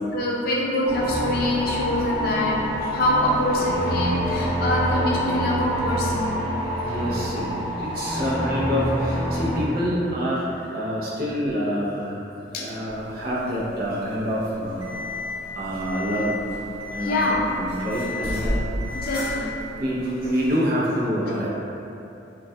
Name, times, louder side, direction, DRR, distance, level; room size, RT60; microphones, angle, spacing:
voice 1, 0.1-2.6 2.9-6.5 11.3-11.5 12.5-12.7 17.0-17.4 19.0-19.5, left 1 dB, 55° left, -4 dB, 0.4 m, -25 dB
sound 1, 0.8-9.6, equal, 10° left, 0.6 m, -26 dB
voice 2, 6.8-7.5 7.8-10.5 10.7-12.2 12.5-14.9 15.5-16.4 16.9-17.2 17.6-18.7 19.8-21.5, equal, 55° right, -7 dB, 0.5 m, -26 dB
sound 2, 12.9-20.5, equal, 25° right, 1.0 m, -35 dB
Alarm, 14.8-15.3 15.8-16.3 16.8-17.3 17.8-18.3 18.8-19.3, left 4 dB, 35° left, 0.8 m, -34 dB
2.2 x 2.2 x 2.6 m, 2.8 s
head